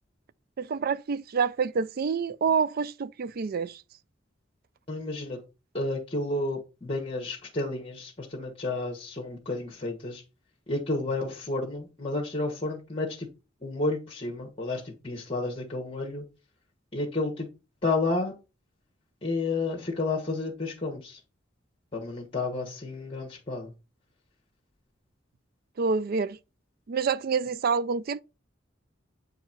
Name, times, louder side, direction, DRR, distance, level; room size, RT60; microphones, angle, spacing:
voice 1, 0.6-3.8 25.8-26.4 26.9-28.2, right 5 dB, 50° right, 0.4 m, -27 dB
voice 2, 4.9-5.4 5.7-10.2 10.7-13.3 13.6-16.2 16.9-17.5 17.8-18.3 19.2-21.2 21.9-23.7, left 2 dB, 30° left, 1.7 m, -31 dB
8.8 x 4.6 x 4.5 m
head